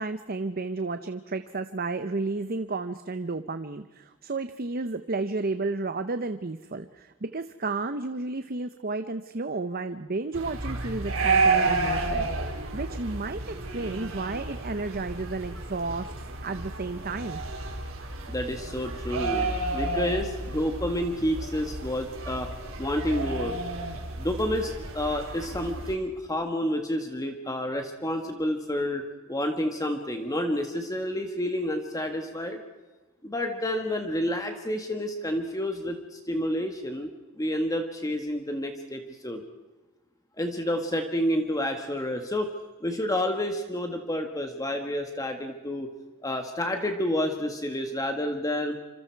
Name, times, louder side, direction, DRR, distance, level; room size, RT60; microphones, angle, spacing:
voice 1, 0.0-12.3 12.7-17.4, right 3 dB, 45° right, 10 dB, 0.8 m, -32 dB
sound 1, 10.3-25.9, right 3 dB, 70° right, 4.3 m, -31 dB
voice 2, 18.3-22.5 22.8-23.6 24.1-29.0 29.3-32.6 33.2-37.1 37.4-39.4 40.4-42.5 42.8-45.9 46.2-48.8, left 1 dB, 15° left, 4 dB, 1.6 m, -29 dB
27.0 x 26.5 x 4.7 m, 1.2 s
head